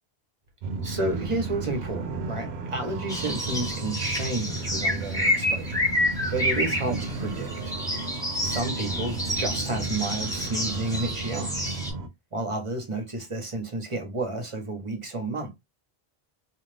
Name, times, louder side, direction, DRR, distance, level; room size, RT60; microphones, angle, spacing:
sound 1, 0.6-12.1, right 3 dB, 80° right, 0.8 m, -34 dB
voice 1, 0.8-5.8 6.3-7.7 8.4-11.8 12.3-15.6, right 2 dB, 30° right, 0.9 m, -31 dB
sound 2, 3.1-11.9, left 1 dB, 5° left, 0.7 m, -29 dB
2.5 x 2.4 x 3.2 m
omnidirectional pair, 1.0 m